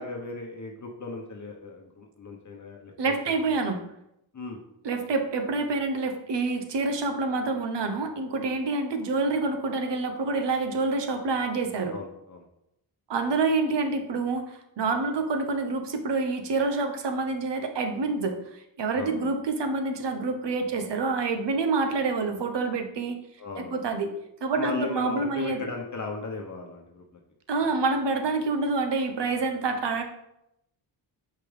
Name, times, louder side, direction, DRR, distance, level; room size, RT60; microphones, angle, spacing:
voice 1, 0.0-3.1 3.5-3.6 4.3-4.6 11.9-12.4 19.0-19.3 23.4-23.8 24.6-27.0, left 3 dB, 35° left, 1 dB, 1.1 m, -36 dB
voice 2, 3.0-3.8 4.8-11.9 13.1-23.2 23.6-24.1 24.4-25.7 27.5-30.0, right 3 dB, 60° right, 6 dB, 1.1 m, -27 dB
5.8 x 5.1 x 3.4 m, 0.81 s
supercardioid pair, 55°, 49 cm